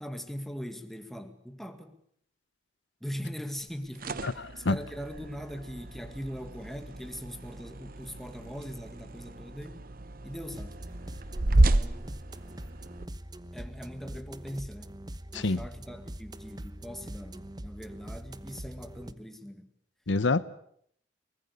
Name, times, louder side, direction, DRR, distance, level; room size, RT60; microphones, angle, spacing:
voice 1, 0.0-2.0 3.0-4.3 4.6-9.9 10.2-10.8 11.4-12.2 13.5-14.9 15.3-19.7, equal, ahead, 2.0 m, -41 dB
sound 1, 3.7-13.1, right 2 dB, 50° right, 0.9 m, -31 dB
voice 2, 4.2-4.8 15.3-15.6 20.1-20.4, left 3 dB, 80° left, 0.9 m, -27 dB
sound 2, 10.5-19.1, right 1 dB, 20° right, 1.1 m, -43 dB
23.5 x 20.5 x 8.4 m
head